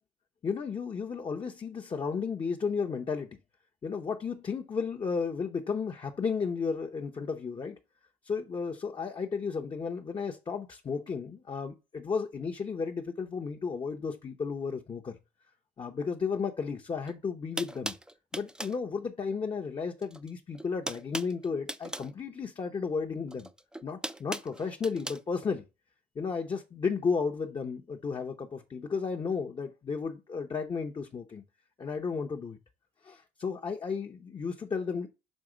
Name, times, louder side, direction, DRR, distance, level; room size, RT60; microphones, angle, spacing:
voice 1, 0.4-3.4 3.8-7.8 8.2-15.2 15.8-18.0 18.3-23.5 23.8-25.6 26.1-31.4 31.8-32.6 33.0-35.1, left 5 dB, 30° left, 0.8 m, -33 dB
sound 1, 17.1-17.2 17.6-18.8 20.0-20.3 20.6-22.1 23.3-25.2, right 1 dB, 5° right, 0.5 m, -38 dB
6.4 x 3.5 x 4.9 m
cardioid pair, 110°, 17 cm